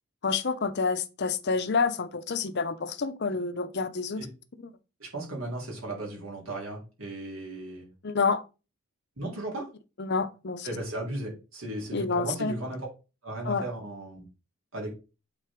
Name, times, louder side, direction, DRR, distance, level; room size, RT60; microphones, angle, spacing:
voice 1, 0.2-4.3 4.6-4.7 8.0-8.4 10.0-10.7 11.9-12.6 13.4-13.7, left 4 dB, 50° left, 0.6 m, -28 dB
voice 2, 5.0-7.9 9.2-9.7 10.6-12.9 13.2-14.2 14.7-14.9, right 1 dB, 65° right, 3.2 m, -36 dB
8.2 x 4.1 x 3.6 m
head